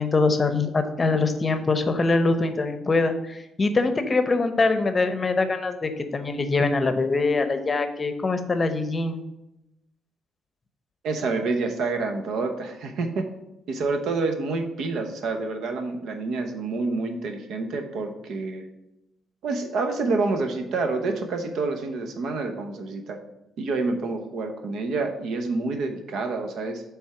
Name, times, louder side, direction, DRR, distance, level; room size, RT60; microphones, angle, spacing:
voice 1, 0.0-9.2, left 3 dB, 30° left, 8 dB, 0.7 m, -23 dB
voice 2, 11.0-13.3 13.7-18.7 19.4-23.2 23.6-26.8, right 3 dB, 75° right, 5 dB, 0.8 m, -28 dB
7.3 x 3.5 x 4.8 m, 0.91 s
cardioid pair, 90°, 0 cm